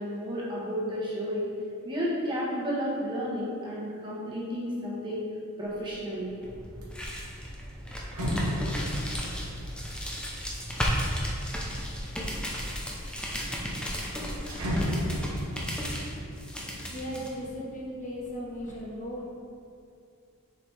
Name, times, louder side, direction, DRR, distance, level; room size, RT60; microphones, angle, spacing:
voice 1, 0.0-1.5 1.8-5.2 5.6-6.3, equal, 20° right, -6 dB, 1.3 m, -32 dB
sound 1, 5.7-6.1 6.5-11.8 12.4-13.1 13.4-13.5 13.8-17.7 18.1-18.8, equal, 85° right, 1.2 m, -34 dB
sound 2, 6.4-17.3, equal, 5° left, 0.7 m, -34 dB
voice 2, 16.9-19.3, equal, 35° left, -4 dB, 1.0 m, -37 dB
6.8 x 4.9 x 3.4 m, 2.4 s
head